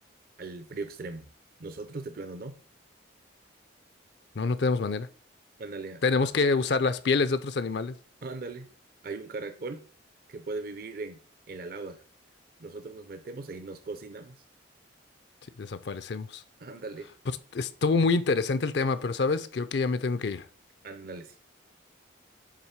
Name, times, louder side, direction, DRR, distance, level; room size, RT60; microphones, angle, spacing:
voice 1, 0.4-1.3 1.6-2.5 5.6-6.3 8.2-8.7 9.0-9.8 10.3-11.2 11.5-12.0 12.6-14.4 16.6-17.1 20.8-21.4, right 3 dB, 50° right, 0.5 m, -39 dB
voice 2, 4.4-5.1 6.0-7.9 15.6-16.4 17.5-20.4, left 4 dB, 60° left, 0.5 m, -26 dB
7.5 x 3.4 x 5.7 m
head